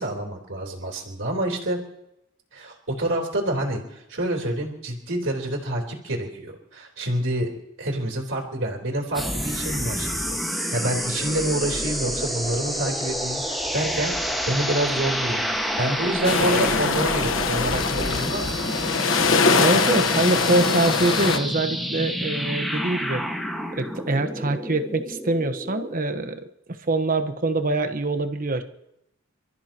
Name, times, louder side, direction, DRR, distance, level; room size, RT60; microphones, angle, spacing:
voice 1, 0.0-1.8 2.5-7.5 7.8-15.4 15.8-18.6, right 1 dB, 65° right, -1 dB, 3.5 m, -27 dB
sound 1, 9.1-26.0, equal, ahead, 1.6 m, -29 dB
sound 2, 9.3-18.9, left 4 dB, 45° left, 3.2 m, -45 dB
sound 3, 16.2-21.4, left 4 dB, 70° left, 1.3 m, -22 dB
voice 2, 19.6-23.2 23.7-26.4 26.8-28.6, right 2 dB, 45° right, 8 dB, 1.2 m, -24 dB
29.0 x 14.0 x 3.0 m, 0.84 s
head